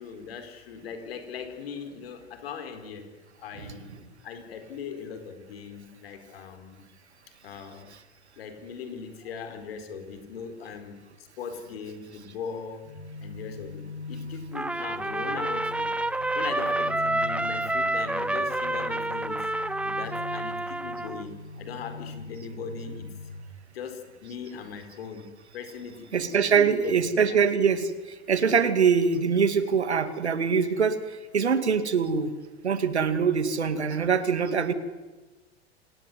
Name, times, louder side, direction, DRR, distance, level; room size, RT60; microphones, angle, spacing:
voice 1, 0.0-3.1 3.4-4.0 4.2-6.8 7.4-7.9 8.4-12.8 13.2-15.9 16.3-19.4 19.8-23.1 23.7-25.2 25.5-27.0 27.3-27.4, left 6 dB, 60° left, 8 dB, 4.4 m, -39 dB
sound 1, 12.8-23.4, left 2 dB, 80° left, 4.8 m, -41 dB
Trumpet, 14.5-21.3, right 2 dB, 5° right, 0.7 m, -29 dB
voice 2, 26.1-27.9 28.3-31.0 31.3-32.3 32.6-34.7, right 6 dB, 75° right, 12 dB, 2.4 m, -23 dB
27.5 x 19.0 x 9.6 m, 1.2 s
figure-of-eight pair, 90°, 33 cm